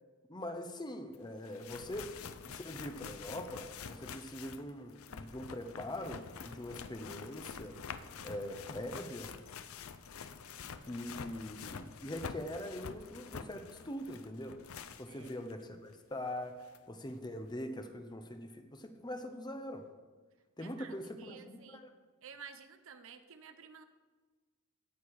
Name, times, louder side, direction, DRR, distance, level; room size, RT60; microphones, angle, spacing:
voice 1, 0.3-7.8 8.2-9.4 10.9-14.6 15.0-19.9 20.6-21.9, left 1 dB, 20° left, 6 dB, 0.9 m, -43 dB
sound 1, 1.1-1.2 1.4-15.5 15.9-16.0 16.7-16.8, left 6 dB, 70° left, 0.6 m, -47 dB
voice 2, 15.1-15.4 20.6-21.8 22.2-23.8, right 6 dB, 65° right, 9 dB, 0.8 m, -53 dB
17.5 x 6.7 x 4.9 m, 1.4 s
head